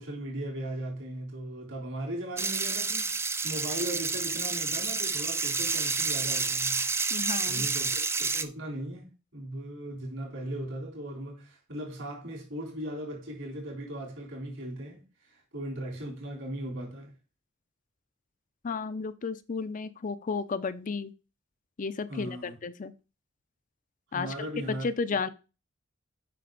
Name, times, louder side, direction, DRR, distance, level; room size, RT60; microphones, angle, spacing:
voice 1, 0.0-6.9 7.5-17.1 22.1-22.6 24.1-25.2, right 1 dB, 70° right, 3.7 m, -38 dB
sound 1, 2.4-8.4, right 4 dB, 15° right, 0.4 m, -29 dB
voice 2, 7.1-7.7 18.6-21.1 21.8-22.9 24.1-25.3, left 4 dB, 40° left, 0.5 m, -33 dB
7.7 x 5.6 x 3.9 m
head